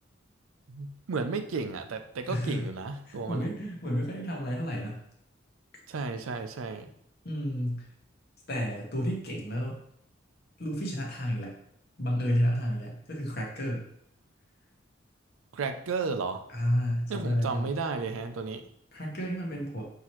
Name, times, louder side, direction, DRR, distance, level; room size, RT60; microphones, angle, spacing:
voice 1, 0.7-3.5 5.9-6.9 15.5-16.4 17.1-18.7, right 4 dB, 85° right, 8 dB, 0.5 m, -33 dB
voice 2, 2.3-2.7 3.1-5.0 7.2-7.9 8.5-9.8 10.6-11.5 12.0-13.8 16.5-17.7 18.9-19.8, equal, 50° left, -1 dB, 1.0 m, -31 dB
5.7 x 2.8 x 3.0 m, 0.73 s
head